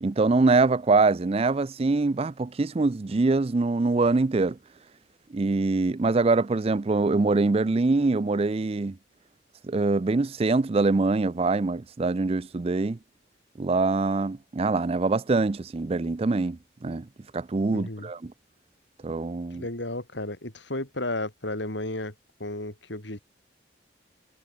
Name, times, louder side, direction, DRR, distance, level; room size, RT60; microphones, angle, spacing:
voice 1, 0.0-4.6 5.3-9.0 9.6-13.0 13.6-17.0 17.3-18.3 19.0-19.6, right 3 dB, 30° right, 0.4 m, -24 dB
voice 2, 17.7-18.1 19.5-22.1 22.4-23.2, left 1 dB, 70° left, 4.5 m, -33 dB
head